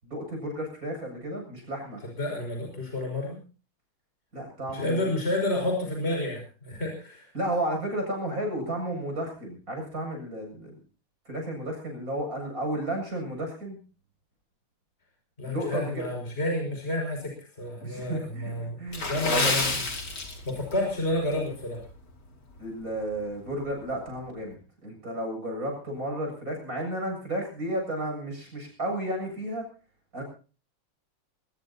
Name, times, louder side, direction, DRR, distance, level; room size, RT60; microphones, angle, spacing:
voice 1, 0.0-2.0 4.3-5.1 7.3-10.8 11.3-13.8 15.5-16.0 17.8-19.6 22.6-29.6 30.1-30.2, right 1 dB, 40° right, 2 dB, 7.9 m, -33 dB
voice 2, 2.0-3.4 4.7-7.3 15.4-18.8 19.1-19.7 20.4-21.8, left 1 dB, 30° left, 1 dB, 6.1 m, -30 dB
Water / Splash splatter, 18.9-20.8 21.1-21.3 21.9-22.1 22.6-22.7, left 3 dB, 50° left, 3.8 m, -28 dB
22.5 x 19.5 x 2.8 m, 0.37 s
omnidirectional pair, 2.3 m